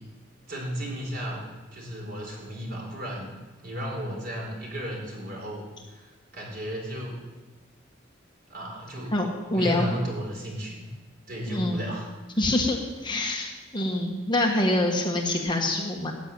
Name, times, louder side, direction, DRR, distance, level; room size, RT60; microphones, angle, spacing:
voice 1, 0.5-1.4 1.7-7.2 8.5-9.2 9.5-10.9 11.3-12.1, equal, 50° right, -2 dB, 4.4 m, -34 dB
voice 2, 9.1-9.9 11.5-11.8 12.4-12.8 13.0-16.1, left 1 dB, 25° left, 0 dB, 1.5 m, -25 dB
13.5 x 6.6 x 9.2 m, 1.2 s
head